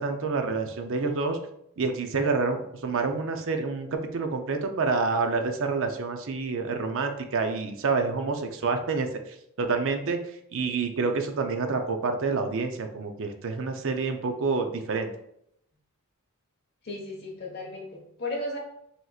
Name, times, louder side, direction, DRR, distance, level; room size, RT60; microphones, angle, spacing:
voice 1, 0.0-1.4 1.8-10.2 10.5-15.1, right 4 dB, 60° right, 6 dB, 0.6 m, -28 dB
voice 2, 16.8-18.6, left 2 dB, 50° left, -1 dB, 1.3 m, -35 dB
6.2 x 2.9 x 2.4 m, 0.74 s
head